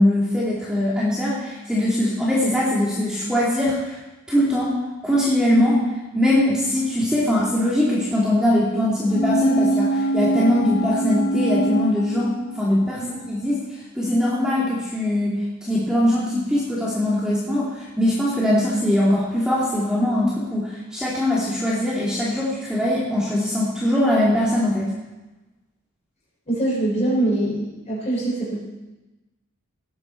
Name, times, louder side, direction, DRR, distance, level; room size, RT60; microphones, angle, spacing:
voice 1, 0.0-4.0 4.3-5.8 6.1-13.6 13.9-15.3 15.6-24.9, left 1 dB, 5° right, -8 dB, 2.7 m, -21 dB
sound 1, 9.1-12.9 13.2-13.3, right 1 dB, 60° left, 1.1 m, -23 dB
voice 2, 26.5-28.6, right 1 dB, 30° left, -5 dB, 6.3 m, -23 dB
18.5 x 9.7 x 4.5 m, 1.1 s
head